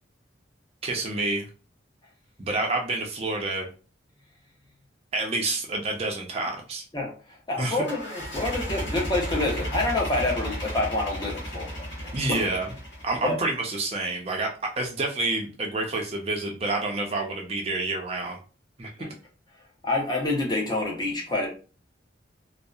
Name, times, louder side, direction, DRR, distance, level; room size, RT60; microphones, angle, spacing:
voice 1, 0.8-1.5 2.4-3.7 5.1-6.8 7.6-7.8 12.1-12.7 13.0-18.4 18.8-18.9, right 2 dB, 30° right, 1 dB, 0.4 m, -28 dB
voice 2, 6.9-12.5 13.2-13.4 19.0-19.1 19.8-21.5, left 2 dB, 20° left, -1 dB, 0.6 m, -28 dB
sound 1, 7.8-13.4, equal, 70° left, 1.1 m, -34 dB
2.7 x 2.0 x 2.3 m, 0.36 s
head